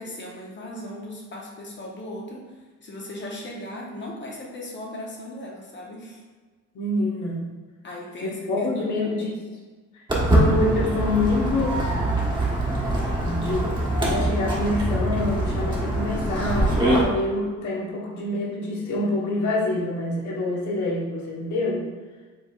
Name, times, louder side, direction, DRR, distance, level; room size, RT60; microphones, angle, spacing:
voice 1, 0.0-6.2 7.8-9.4, left 1 dB, 40° left, -2 dB, 1.0 m, -38 dB
voice 2, 6.7-7.5 8.2-9.4 9.9-10.0 10.3-11.9 13.2-13.7 14.0-21.9, left 2 dB, 75° left, -4 dB, 1.4 m, -26 dB
Walk footsteps, 10.1-17.0, right 1 dB, 15° right, 1.3 m, -23 dB
5.4 x 3.4 x 2.5 m, 1.4 s
cardioid pair, 90°, 30 cm